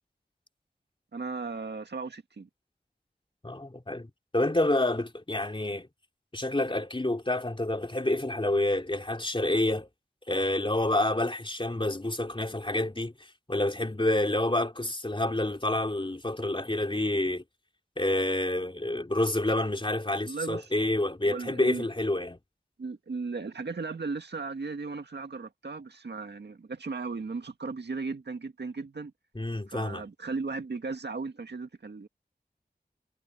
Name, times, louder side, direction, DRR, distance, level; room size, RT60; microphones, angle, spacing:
voice 1, 1.1-2.5 20.2-20.7 21.2-21.9 22.8-29.1 29.7-32.1, right 4 dB, 90° right, 1.9 m, -36 dB
voice 2, 3.4-4.1 4.3-5.9 6.3-9.9 10.3-17.4 18.0-22.4 29.3-30.1, left 1 dB, 30° left, 3.0 m, -28 dB
cardioid pair, 40°, 17 cm